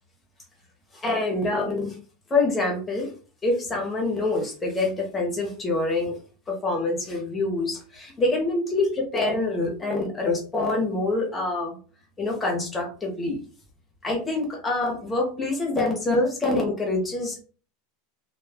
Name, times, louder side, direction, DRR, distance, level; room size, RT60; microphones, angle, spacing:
voice 1, 1.0-1.9 2.3-3.1 3.4-6.1 6.5-11.8 12.2-13.4 14.0-17.4, left 2 dB, 10° left, 0 dB, 0.8 m, -25 dB
2.2 x 2.1 x 3.4 m, 0.39 s
supercardioid pair, 160°, 0 cm